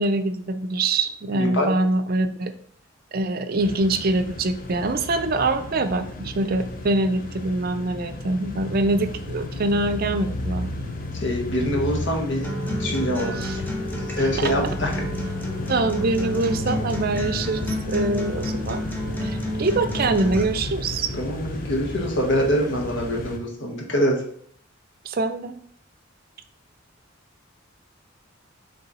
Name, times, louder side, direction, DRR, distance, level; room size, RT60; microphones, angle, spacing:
voice 1, 0.0-2.5 3.1-10.7 13.4-13.5 14.2-14.5 15.7-18.8 19.2-21.1 25.1-25.5, right 2 dB, 50° right, 10 dB, 0.5 m, -24 dB
voice 2, 1.3-1.7 11.2-12.5 12.8-13.6 14.1-15.0 21.2-24.2, equal, 65° left, 0 dB, 1.5 m, -24 dB
sound 1, 3.6-23.4, left 2 dB, 45° left, 0.7 m, -33 dB
Acoustic guitar, 12.4-20.4, equal, 10° left, 0.9 m, -31 dB
6.9 x 3.3 x 4.1 m, 0.62 s
head